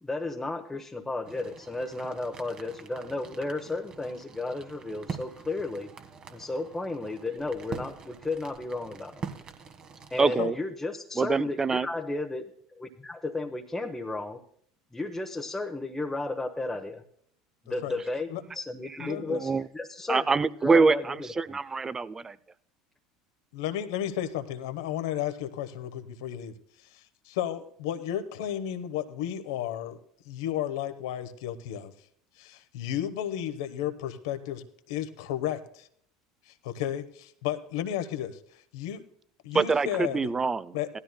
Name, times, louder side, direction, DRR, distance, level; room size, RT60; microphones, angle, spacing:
voice 1, 0.0-5.9 6.3-9.2 10.1-12.5 12.8-14.4 14.9-17.0 17.6-21.6, left 2 dB, 10° left, 3 dB, 1.0 m, -34 dB
sound 1, 1.3-10.2, right 5 dB, 40° right, 1.3 m, -44 dB
voice 2, 10.2-10.6 11.2-11.9 19.0-19.6 20.1-22.4 39.5-41.0, right 4 dB, 20° right, 18 dB, 0.5 m, -25 dB
voice 3, 19.0-19.4 23.5-26.5 26.9-30.0 30.2-31.9 32.4-35.9 36.5-39.0 39.4-40.2 40.7-40.9, left 11 dB, 70° left, 10 dB, 1.0 m, -33 dB
18.0 x 12.5 x 2.2 m, 0.64 s
hypercardioid pair, 70°, 2 cm